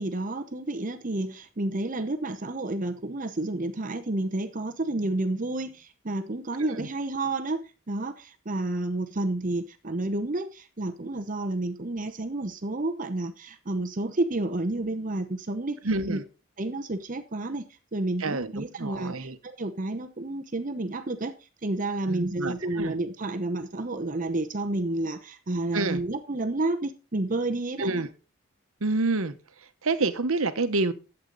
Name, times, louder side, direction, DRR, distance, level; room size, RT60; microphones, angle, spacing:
voice 1, 0.0-15.8 16.1-16.2 16.6-17.6 17.9-19.1 19.4-21.3 21.6-28.0, right 2 dB, 35° right, 0.8 m, -30 dB
voice 2, 15.8-16.2 18.2-19.4 22.1-22.9 25.7-26.0 27.8-28.1 28.8-29.3 29.8-30.9, right 3 dB, 75° right, 1.0 m, -28 dB
11.5 x 8.1 x 3.9 m
head